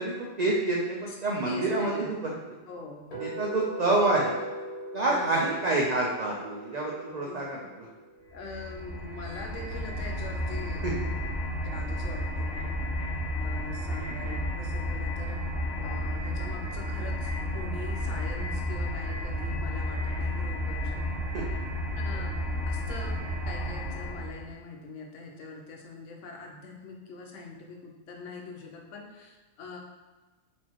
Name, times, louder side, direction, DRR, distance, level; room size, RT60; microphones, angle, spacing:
voice 1, 0.0-2.3 3.2-4.4 4.9-7.9 10.8-10.9 21.3-21.4, right 2 dB, 70° right, -3 dB, 0.4 m, -27 dB
voice 2, 1.5-2.1 2.7-3.4 4.0-4.1 5.0-5.5 7.2-7.4 8.3-11.0 11.6-12.8 13.4-15.4 15.8-21.0 22.0-22.3 22.6-29.8, left 3 dB, 70° left, 1 dB, 1.0 m, -43 dB
sound 1, 3.1-9.2, right 1 dB, 35° left, 0.7 m, -41 dB
sound 2, 8.3-24.5, left 1 dB, 50° left, 1.1 m, -32 dB
4.3 x 2.8 x 2.9 m, 1.3 s
omnidirectional pair, 1.4 m